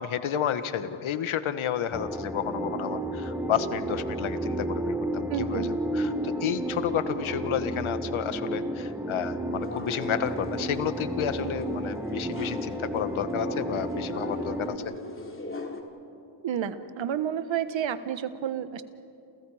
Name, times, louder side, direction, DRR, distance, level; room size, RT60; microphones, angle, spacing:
voice 1, 0.0-14.7, left 9 dB, 70° left, 11 dB, 1.6 m, -31 dB
sound 1, 1.9-14.8, right 1 dB, 5° right, 1.7 m, -32 dB
voice 2, 5.3-5.7 16.4-18.8, right 9 dB, 65° right, 12 dB, 1.5 m, -30 dB
sound 2, 9.6-15.8, left 2 dB, 25° left, 3.3 m, -40 dB
30.0 x 28.5 x 5.0 m, 2.6 s
cardioid pair, 75°, 50 cm